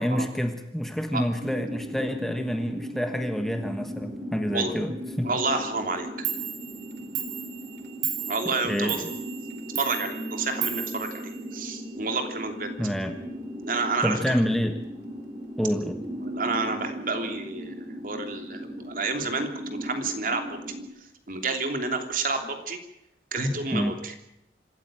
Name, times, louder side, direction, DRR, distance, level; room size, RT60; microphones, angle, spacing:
voice 1, 0.0-5.3 8.6-9.0 12.8-13.2 14.0-14.8 15.6-16.0 23.7-24.0, equal, ahead, 6 dB, 1.3 m, -28 dB
sound 1, 1.4-20.8, equal, 35° right, 4.8 m, -37 dB
voice 2, 5.2-6.1 8.3-9.0 9.8-11.2 11.5-12.8 13.6-14.2 16.2-20.6 21.3-22.8 23.3-24.1, right 3 dB, 50° right, 5 dB, 3.0 m, -29 dB
Clock, 5.9-6.0 6.2-11.9, right 10 dB, 70° right, 2.8 m, -35 dB
26.0 x 14.0 x 8.8 m, 0.83 s
head